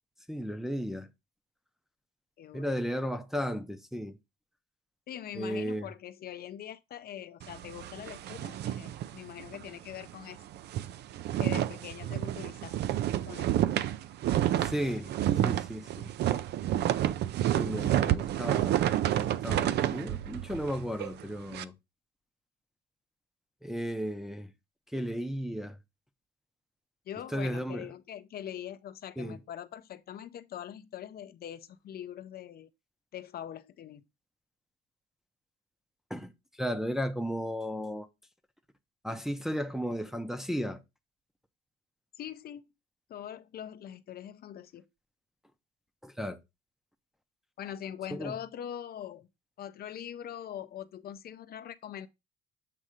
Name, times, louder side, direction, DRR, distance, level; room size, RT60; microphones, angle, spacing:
voice 1, 0.3-1.1 2.5-4.1 5.3-5.9 14.6-15.1 15.4-16.1 17.5-18.8 19.2-21.7 23.6-24.5 24.9-25.7 27.3-27.9 29.2-29.4 36.1-36.3 36.6-38.1 39.0-40.8 46.0-46.4 48.1-48.3, equal, ahead, 0.6 m, -34 dB
voice 2, 2.4-2.8 5.1-10.4 11.3-12.8 13.3-13.6 27.1-32.7 33.1-34.0 42.2-42.7 43.1-44.9 47.6-49.3 49.6-52.1, left 10 dB, 50° left, 0.5 m, -42 dB
sound 1, 7.4-9.7 10.0-10.1 10.5-21.6, right 12 dB, 55° right, 0.4 m, -30 dB
7.5 x 2.7 x 4.9 m
cardioid pair, 125°, 21 cm